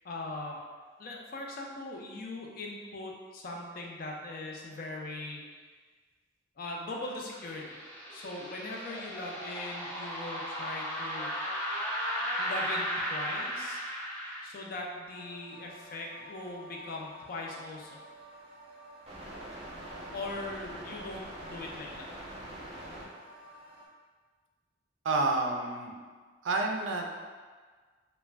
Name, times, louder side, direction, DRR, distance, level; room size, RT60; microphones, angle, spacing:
voice 1, 0.0-0.6 1.0-5.5 6.6-7.8 8.1-11.3 12.4-13.8 14.4-18.0 20.1-22.1, left 2 dB, 50° left, -1 dB, 0.4 m, -40 dB
sound 1, 6.7-14.4, equal, 10° left, 0.6 m, -35 dB
sound 2, 15.1-23.9, right 1 dB, 35° right, 0.6 m, -46 dB
voice 2, 25.0-25.9 26.4-27.2, right 3 dB, 85° right, 2 dB, 0.4 m, -29 dB
2.4 x 2.2 x 3.2 m, 1.5 s
head